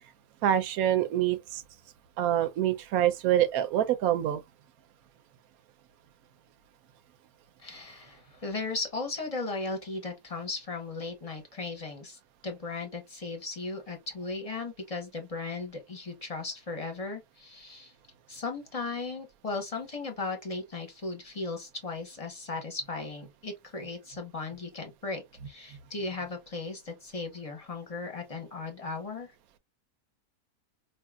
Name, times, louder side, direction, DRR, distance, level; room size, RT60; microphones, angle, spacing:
voice 1, 0.4-1.6 2.2-4.4, right 11 dB, 75° right, 1.0 m, -26 dB
voice 2, 7.6-17.9 18.3-29.3, left 3 dB, 25° left, 0.9 m, -37 dB
4.8 x 2.7 x 2.3 m
omnidirectional pair, 1.6 m